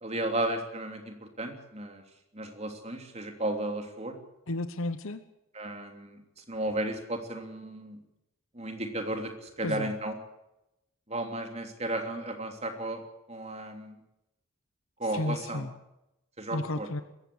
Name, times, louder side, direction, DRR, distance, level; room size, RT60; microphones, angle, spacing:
voice 1, 0.0-2.0 2.3-4.2 5.5-8.0 8.5-10.1 11.1-13.0 13.3-14.0 15.0-15.6 16.4-16.9, right 1 dB, 30° right, 5 dB, 3.1 m, -34 dB
voice 2, 4.5-5.2 9.6-9.9 15.1-15.7 16.5-17.0, left 2 dB, 65° left, 11 dB, 1.0 m, -32 dB
21.5 x 16.0 x 8.1 m, 0.88 s
head